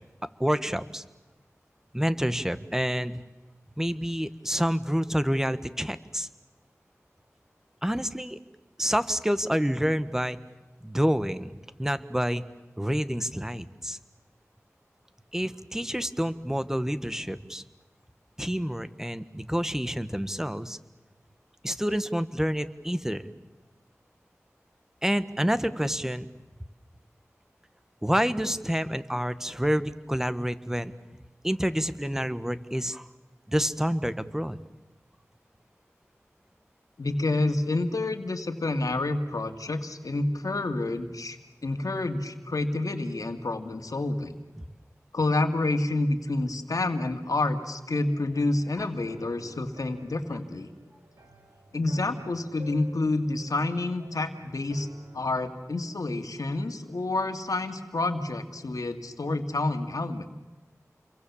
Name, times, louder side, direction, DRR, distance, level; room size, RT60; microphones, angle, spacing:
voice 1, 0.4-1.0 1.9-3.2 3.8-6.3 7.8-8.4 8.8-10.4 10.8-11.5 11.8-12.4 12.8-14.0 15.3-17.6 18.4-20.8 21.6-23.3 25.0-26.3 28.0-30.9 31.4-33.1 33.5-34.6 48.8-48.9, equal, 10° right, 12 dB, 1.4 m, -28 dB
voice 2, 37.0-44.4 45.1-50.7 51.7-54.9 55.1-60.3, left 2 dB, 85° left, 7 dB, 2.1 m, -28 dB
sound 1, 47.9-55.3, right 1 dB, 75° right, 3.4 m, -52 dB
29.5 x 23.0 x 7.2 m, 1.1 s
wide cardioid pair, 50°, 6 cm